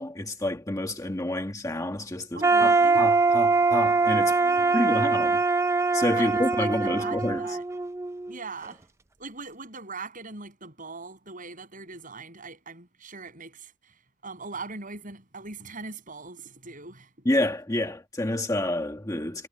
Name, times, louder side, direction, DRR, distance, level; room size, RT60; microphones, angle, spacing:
voice 1, 0.0-4.4 4.7-5.4 5.9-7.6 17.2-19.5, left 1 dB, 15° left, 1.4 m, -29 dB
voice 2, 2.3-3.1 4.3-5.2 6.2-7.6 8.3-8.8 9.2-13.9 14.2-17.1, right 3 dB, 40° right, 7.2 m, -40 dB
sound 1, 2.4-8.3, right 3 dB, 15° right, 0.4 m, -23 dB
head